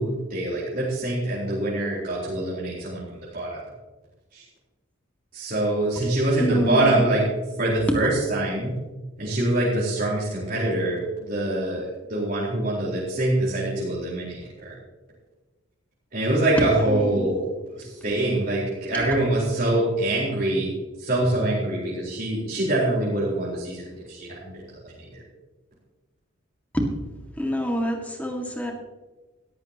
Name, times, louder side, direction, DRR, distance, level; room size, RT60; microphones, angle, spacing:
voice 1, 0.0-3.6 4.3-4.4 5.3-7.2 7.6-8.7 9.2-14.7 16.1-20.7 21.0-24.5 24.8-25.2, right 1 dB, 45° right, -7 dB, 4.4 m, -25 dB
voice 2, 6.3-7.2 7.8-8.1 16.6-17.3 18.9-19.1 26.7-26.9 27.4-28.7, equal, 10° left, 1 dB, 1.9 m, -27 dB
17.0 x 14.5 x 3.0 m, 1.2 s
head